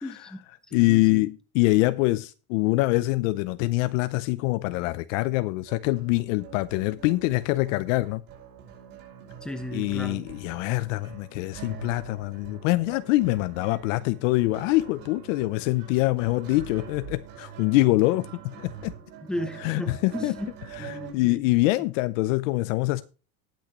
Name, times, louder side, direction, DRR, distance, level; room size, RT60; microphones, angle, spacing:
voice 1, 0.0-1.3 9.4-10.3 19.2-20.5 20.8-21.5, left 1 dB, ahead, 0.8 m, -35 dB
voice 2, 0.7-8.2 9.7-18.9 19.6-20.3 20.8-23.0, left 20 dB, 55° left, 0.6 m, -24 dB
sound 1, 5.7-21.1, right 7 dB, 40° right, 5.2 m, -44 dB
18.5 x 6.3 x 3.0 m
supercardioid pair, 160°, 47 cm